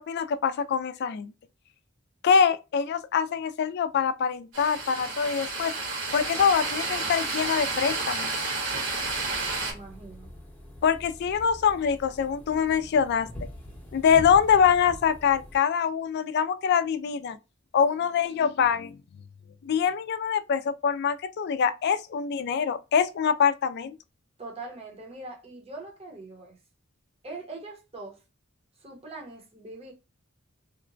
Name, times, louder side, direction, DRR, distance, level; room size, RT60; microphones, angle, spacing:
voice 1, 0.0-1.3 2.2-5.7 6.1-8.3 10.8-13.3 13.9-17.4 17.7-19.0 19.7-23.9, left 7 dB, 55° left, 0.3 m, -24 dB
sound 1, 4.5-9.7, right 3 dB, 70° right, 1.4 m, -31 dB
sound 2, 8.9-15.6, left 1 dB, 10° left, 0.8 m, -43 dB
voice 2, 9.5-10.3 24.4-26.6 27.2-28.2 28.8-29.9, right 2 dB, 30° right, 0.8 m, -42 dB
2.9 x 2.1 x 2.5 m
head